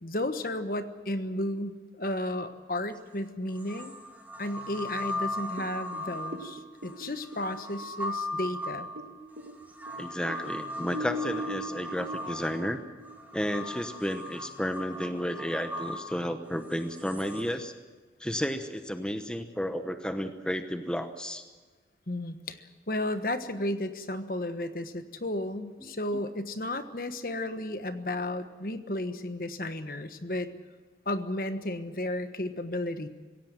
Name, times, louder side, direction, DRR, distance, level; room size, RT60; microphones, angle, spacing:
voice 1, 0.0-3.9 4.4-8.9 22.1-22.6 22.9-30.5 31.0-33.1, left 1 dB, 55° left, 9 dB, 1.3 m, -33 dB
sound 1, 2.9-3.0 3.6-17.4, left 1 dB, 10° right, 2.3 m, -38 dB
sound 2, 5.6-9.1 9.4-13.5, equal, 65° right, 2.1 m, -40 dB
voice 2, 10.0-12.8 13.3-17.7 18.2-21.4 25.8-25.9, equal, 5° left, 7 dB, 1.0 m, -32 dB
26.0 x 16.5 x 7.6 m, 1.4 s
head